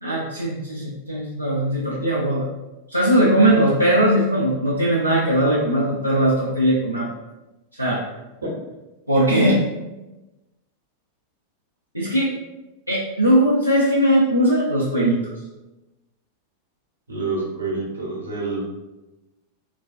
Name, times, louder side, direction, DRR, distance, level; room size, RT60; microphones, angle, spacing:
voice 1, 0.0-2.5 2.9-7.1 7.8-8.0 9.1-9.6 11.9-12.3 12.9-15.3, right 1 dB, 90° right, -6 dB, 0.4 m, -19 dB
voice 2, 17.1-18.6, right 3 dB, 70° right, -2 dB, 0.8 m, -27 dB
3.2 x 2.2 x 2.4 m, 1.0 s
figure-of-eight pair, 90°, 0 cm